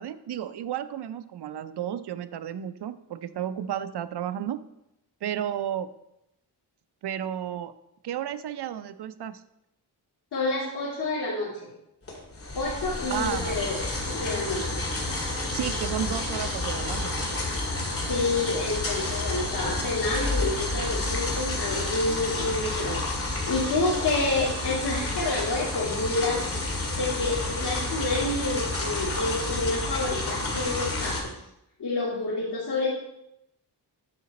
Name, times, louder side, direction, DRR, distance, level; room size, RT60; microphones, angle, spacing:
voice 1, 0.0-4.6 5.2-5.9 7.0-7.7 8.0-9.4 13.1-13.6 15.5-17.1, right 10 dB, 80° right, 13 dB, 0.6 m, -32 dB
voice 2, 10.3-11.7 12.5-13.8 14.1-14.8 18.1-31.4 31.8-32.9, left 2 dB, 75° left, -10 dB, 2.7 m, -29 dB
sound 1, 12.0-31.2, left 2 dB, 35° left, 2.1 m, -30 dB
9.9 x 6.6 x 4.2 m, 0.84 s
wide cardioid pair, 140°, 40 cm